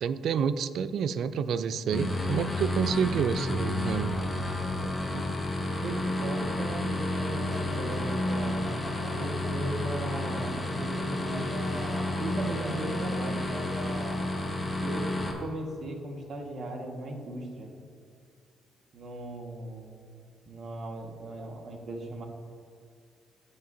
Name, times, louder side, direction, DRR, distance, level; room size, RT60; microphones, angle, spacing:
voice 1, 0.0-4.3, right 7 dB, 70° right, 13 dB, 0.4 m, -29 dB
sound 1, 1.9-15.3, left 1 dB, 20° left, 1.5 m, -31 dB
voice 2, 4.8-5.2 5.8-8.7 9.1-11.5 12.2-13.7 14.8-17.7 18.9-19.9 20.5-22.2, right 2 dB, 55° right, 2 dB, 1.6 m, -37 dB
sound 2, 7.5-14.3, right 1 dB, 40° right, 1.4 m, -43 dB
17.5 x 6.6 x 2.7 m, 2.2 s
cardioid pair, 90°, 0 cm